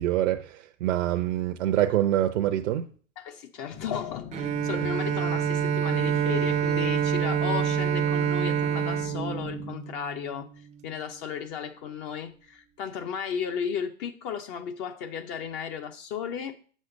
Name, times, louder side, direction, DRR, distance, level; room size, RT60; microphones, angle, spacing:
voice 1, 0.0-2.9 4.7-4.9, right 12 dB, 65° right, 0.7 m, -25 dB
voice 2, 3.2-16.6, left 7 dB, 40° left, 0.8 m, -34 dB
sound 1, 3.7-9.7, left 6 dB, 75° left, 3.8 m, -42 dB
Bowed string instrument, 4.3-10.3, right 8 dB, 20° right, 0.5 m, -27 dB
7.8 x 6.4 x 3.9 m
hypercardioid pair, 115°, 38 cm